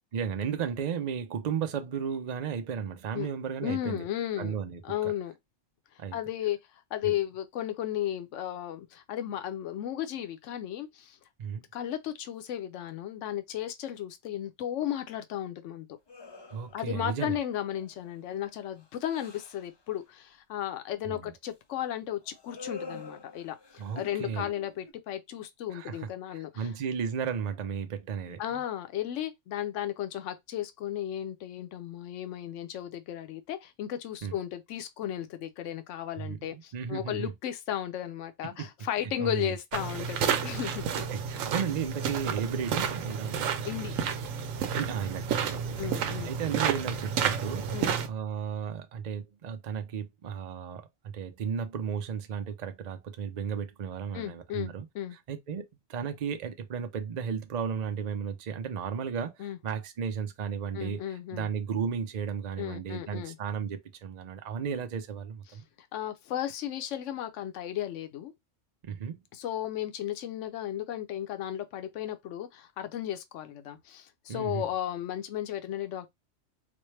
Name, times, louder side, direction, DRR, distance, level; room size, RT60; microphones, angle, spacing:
voice 1, 0.1-4.0 4.4-4.8 6.0-6.2 7.0-7.2 11.4-11.6 16.5-17.4 21.1-21.3 23.8-24.5 25.7-28.4 34.2-34.3 36.2-37.3 38.4-38.7 39.2-39.5 40.8-43.5 44.8-47.7 48.0-54.9 55.1-65.6 68.8-69.2 74.3-74.6, right 7 dB, 50° right, 0.5 m, -34 dB
voice 2, 3.6-4.5 4.8-5.3 6.1-6.6 6.9-11.2 11.7-15.9 16.7-23.6 23.9-26.7 28.4-40.9 43.6-43.9 45.8-46.3 47.7-48.0 54.1-55.2 59.4-59.6 60.7-61.5 62.6-63.4 65.8-68.3 69.3-76.1, left 11 dB, 75° left, 1.0 m, -34 dB
sound 1, 16.1-17.0 17.6-18.1 18.5-19.8 22.2-24.9, left 4 dB, 45° left, 0.3 m, -46 dB
sound 2, 39.7-48.1, right 7 dB, 90° right, 1.0 m, -31 dB
4.2 x 2.1 x 3.2 m
omnidirectional pair, 1.3 m